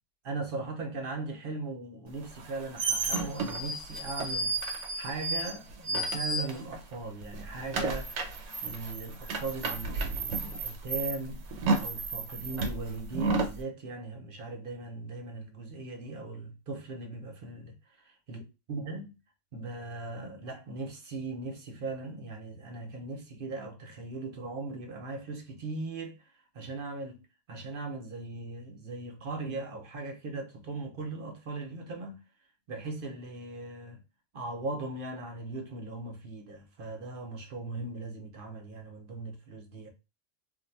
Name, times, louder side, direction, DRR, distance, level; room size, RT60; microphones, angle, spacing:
voice 1, 0.2-17.7 18.3-18.4 18.7-19.2 19.5-27.2 27.5-32.2 32.7-34.0 34.3-39.9, right 3 dB, 50° right, 0.9 m, -39 dB
sound 1, 2.3-6.9 7.2-13.6, right 3 dB, 80° right, 1.0 m, -32 dB
2.5 x 2.3 x 4.0 m
omnidirectional pair, 1.3 m